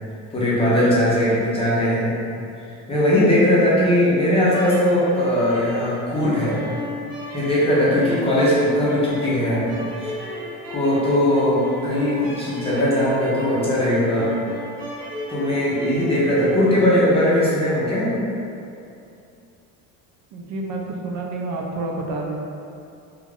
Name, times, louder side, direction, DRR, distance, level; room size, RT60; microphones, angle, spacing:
voice 1, 0.3-2.1 2.9-6.6 7.3-9.8 10.0-10.1 10.7-14.4 15.3-18.1, left 1 dB, 15° left, -8 dB, 0.6 m, -19 dB
sound 1, 4.5-16.7, left 1 dB, 25° right, 0.8 m, -35 dB
voice 2, 20.3-22.4, right 2 dB, 60° right, 0 dB, 0.5 m, -29 dB
2.3 x 2.3 x 3.3 m, 2.6 s
cardioid pair, 130°, 34 cm